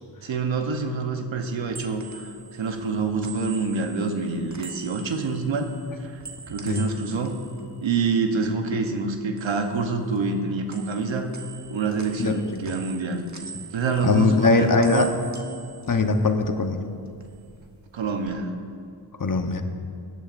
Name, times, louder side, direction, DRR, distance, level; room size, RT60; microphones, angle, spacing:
voice 1, 0.2-5.7 6.0-6.2 6.5-7.4 7.8-11.3 11.7-13.3 13.7-15.2 17.9-18.5, right 4 dB, 85° right, 5 dB, 1.0 m, -26 dB
sound 1, 1.4-8.7 9.0-10.4 10.7-16.7 17.0-18.3, right 5 dB, 40° right, 1.3 m, -44 dB
voice 2, 14.0-15.1 15.9-16.8 19.2-19.6, left 4 dB, 45° left, 6 dB, 1.0 m, -21 dB
16.5 x 10.0 x 2.6 m, 2.3 s
cardioid pair, 40°, 45 cm